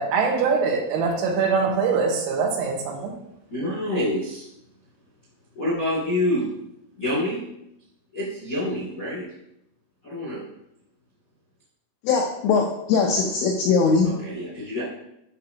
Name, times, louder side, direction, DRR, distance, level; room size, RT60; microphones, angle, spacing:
voice 1, 0.0-3.2, right 5 dB, 85° right, 2 dB, 3.8 m, -23 dB
voice 2, 3.5-4.4 5.5-6.4 7.0-7.4 8.1-9.2 10.0-10.4 14.0-14.8, left 1 dB, 40° left, -7 dB, 1.1 m, -27 dB
voice 3, 12.0-14.1, left 5 dB, 85° left, 0 dB, 2.6 m, -21 dB
9.5 x 5.8 x 2.8 m, 0.81 s
omnidirectional pair, 6.0 m